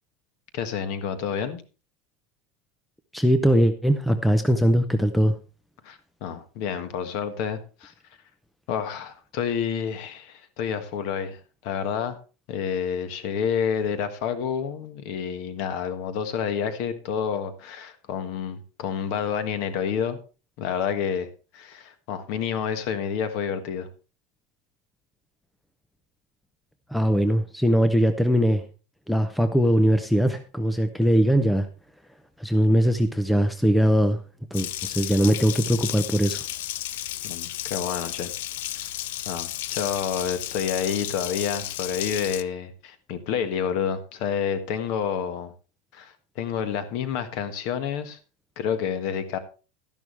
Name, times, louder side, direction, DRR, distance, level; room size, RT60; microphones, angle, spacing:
voice 1, 0.5-1.6 5.8-7.9 8.7-12.2 12.5-20.2 20.6-23.9 37.2-38.3 38.8-38.9 39.2-45.5 45.9-48.2 48.6-49.4, left 7 dB, 45° left, 10 dB, 1.5 m, -29 dB
voice 2, 3.1-5.3 26.9-28.6 29.1-31.7 32.4-34.2 34.5-36.4, equal, ahead, 8 dB, 0.6 m, -21 dB
Water tap faucet, 34.5-42.4, left 13 dB, 70° left, 0.6 m, -33 dB
12.5 x 11.0 x 3.3 m, 0.34 s
supercardioid pair, 175°, 0 cm